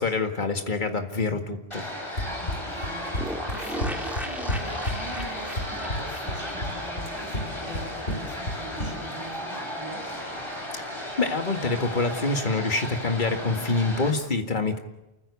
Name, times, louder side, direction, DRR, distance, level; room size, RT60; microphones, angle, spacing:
voice 1, 0.0-1.9 10.7-10.8 11.2-14.8, left 3 dB, 45° left, 5 dB, 2.0 m, -26 dB
sound 1, 1.7-14.1, left 1 dB, 25° left, 4.6 m, -35 dB
Run, 2.2-9.2, left 1 dB, 75° left, 4.6 m, -32 dB
voice 2, 2.3-10.1, right 1 dB, 20° right, 0 dB, 7.3 m, -43 dB
sound 2, 3.2-7.8 8.1-8.2 8.4-8.5, equal, ahead, 1.7 m, -37 dB
28.5 x 15.0 x 8.3 m, 0.97 s
omnidirectional pair, 1.1 m